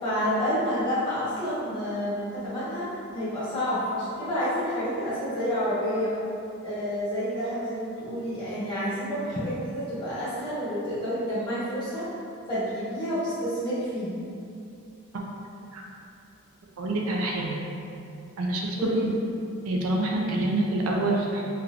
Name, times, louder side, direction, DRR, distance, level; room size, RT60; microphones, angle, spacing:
voice 1, 0.0-6.1 6.6-12.1 12.5-14.1 18.8-19.1, equal, 20° left, -13 dB, 1.2 m, -29 dB
voice 2, 16.8-17.6 18.4-19.1 19.7-21.5, right 2 dB, 85° right, -1 dB, 0.5 m, -26 dB
3.1 x 2.9 x 2.5 m, 2.6 s
head